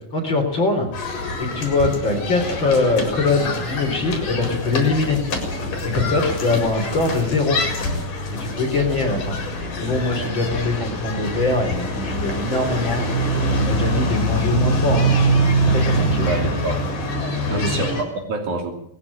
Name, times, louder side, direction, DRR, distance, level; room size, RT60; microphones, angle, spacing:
voice 1, 0.1-0.9 1.5-5.2 5.8-7.6 8.4-9.4 9.8-13.0 13.5-15.1 15.6-16.3 17.5-17.7, left 3 dB, 30° left, 2 dB, 4.3 m, -22 dB
sound 1, 0.9-18.0, equal, 60° left, 6.1 m, -24 dB
voice 2, 15.8-16.8 17.5-18.7, right 2 dB, 55° right, 3 dB, 4.2 m, -27 dB
19.5 x 16.0 x 8.8 m, 0.72 s
omnidirectional pair, 4.2 m